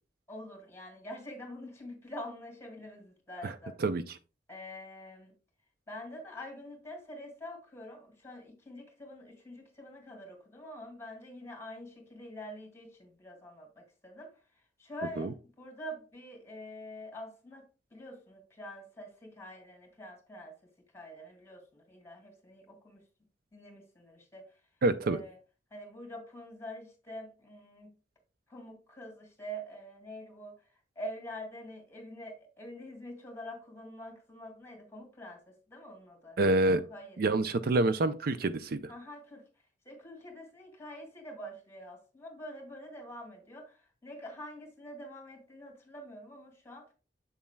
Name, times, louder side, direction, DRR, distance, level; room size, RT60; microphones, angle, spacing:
voice 1, 0.3-3.8 4.5-5.3 5.9-14.3 14.8-17.6 17.9-20.6 20.9-23.0 23.5-24.5 25.0-25.4 25.7-27.9 28.5-30.6 31.0-36.4 36.7-37.2 38.9-39.4 39.8-46.8, equal, 15° left, 2 dB, 2.4 m, -46 dB
voice 2, 3.8-4.2 15.2-15.3 24.8-25.2 36.4-36.8 37.2-38.9, right 2 dB, 55° right, 12 dB, 0.4 m, -27 dB
7.5 x 7.0 x 2.2 m, 0.32 s
head